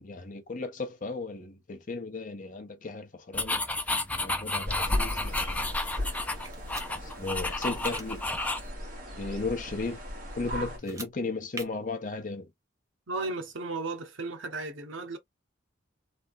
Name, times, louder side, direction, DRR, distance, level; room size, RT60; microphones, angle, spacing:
voice 1, 0.0-3.7 4.2-5.8 6.9-8.3 9.1-10.0 10.4-12.5, left 3 dB, 40° left, 0.7 m, -35 dB
sound 1, 3.3-8.7, left 2 dB, 5° left, 0.4 m, -31 dB
sound 2, 4.7-10.8, left 1 dB, 45° right, 1.7 m, -36 dB
sound 3, 6.4-6.9 7.6-8.1 10.8-11.1 11.5-11.7, right 3 dB, 15° right, 0.7 m, -41 dB
voice 2, 13.1-15.2, right 3 dB, 70° right, 0.9 m, -35 dB
3.3 x 2.6 x 2.6 m
head